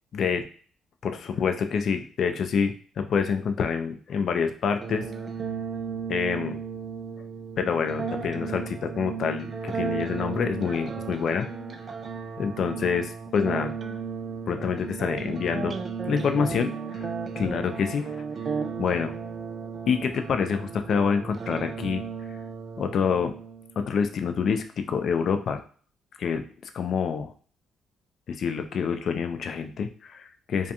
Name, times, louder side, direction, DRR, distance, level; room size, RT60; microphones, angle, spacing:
voice 1, 1.0-5.1 6.1-6.6 7.6-11.5 12.4-13.7 14.5-15.7 16.1-17.1 17.4-18.2 18.8-19.1 19.9-22.0 22.8-23.3 23.8-25.6 26.2-26.4 26.7-27.3 28.3-30.7, left 6 dB, 60° left, 7 dB, 0.3 m, -27 dB
sound 1, 4.8-23.8, right 5 dB, 45° right, 0.3 m, -34 dB
2.4 x 2.2 x 2.7 m, 0.43 s
cardioid pair, 90°, 0 cm